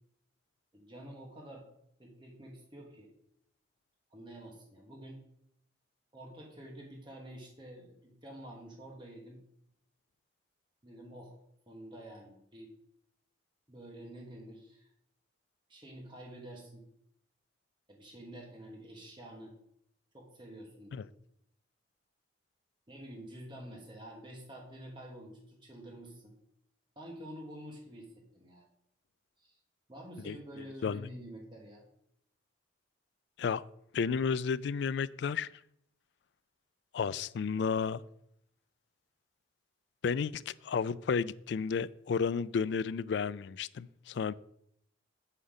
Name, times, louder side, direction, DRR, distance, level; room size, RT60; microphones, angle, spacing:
voice 1, 0.7-1.7 2.0-3.1 4.1-5.2 6.1-9.4 10.8-11.4 11.7-12.7 13.7-14.9 15.7-16.9 17.9-19.6 20.1-21.0 22.9-26.4 26.9-28.6 29.4-29.6 29.9-31.9, right 1 dB, 25° right, 1.4 m, -48 dB
voice 2, 33.9-35.5 36.9-38.0 40.0-44.3, left 6 dB, 60° left, 0.3 m, -32 dB
8.0 x 5.7 x 5.0 m
head